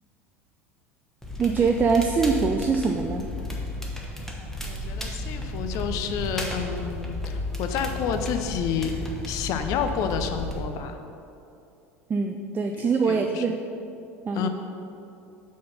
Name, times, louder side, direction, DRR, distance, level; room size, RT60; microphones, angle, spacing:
Crackle, 1.2-10.6, left 1 dB, 5° left, 1.1 m, -33 dB
voice 1, 1.4-3.3 12.1-13.6 14.3-14.5, right 5 dB, 25° right, 4 dB, 0.4 m, -23 dB
voice 2, 4.6-8.9 9.2-11.0 12.8-13.4 14.3-14.5, left 7 dB, 50° left, 7 dB, 0.6 m, -30 dB
7.5 x 4.3 x 5.5 m, 2.7 s
figure-of-eight pair, 75°, 8 cm